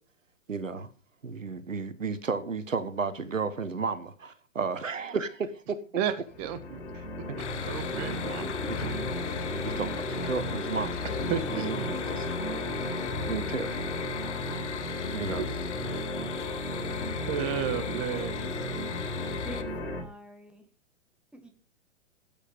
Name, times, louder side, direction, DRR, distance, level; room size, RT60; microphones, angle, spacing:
voice 1, 0.5-0.9 1.2-5.8 6.9-7.0 7.3-7.4 8.2-9.0 9.5-11.0 11.5-12.3 13.0-13.9 15.1-15.4, right 4 dB, 85° right, 1.3 m, -33 dB
voice 2, 6.0-6.8 7.3-8.5 11.3-11.6 17.3-18.4, right 9 dB, 30° right, 1.5 m, -32 dB
sound 1, 6.3-20.0, left 2 dB, 50° left, 5.0 m, -34 dB
sound 2, 7.4-19.6, left 8 dB, 65° left, 1.4 m, -40 dB
voice 3, 19.4-20.7 21.3-21.5, right 1 dB, 5° right, 1.9 m, -46 dB
13.5 x 8.9 x 5.3 m
figure-of-eight pair, 120°, 38 cm